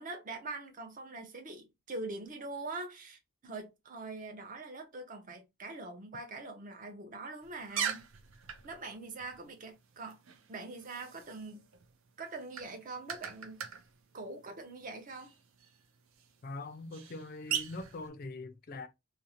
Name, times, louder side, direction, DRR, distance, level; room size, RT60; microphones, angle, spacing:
voice 1, 0.0-8.0 8.6-10.2 10.5-11.6 12.2-13.6 14.1-15.3, right 3 dB, 40° right, 0.6 m, -43 dB
sound 1, 7.4-18.1, right 8 dB, 85° right, 0.5 m, -43 dB
voice 2, 16.4-18.9, left 2 dB, 45° left, 0.4 m, -42 dB
2.5 x 2.0 x 2.7 m
head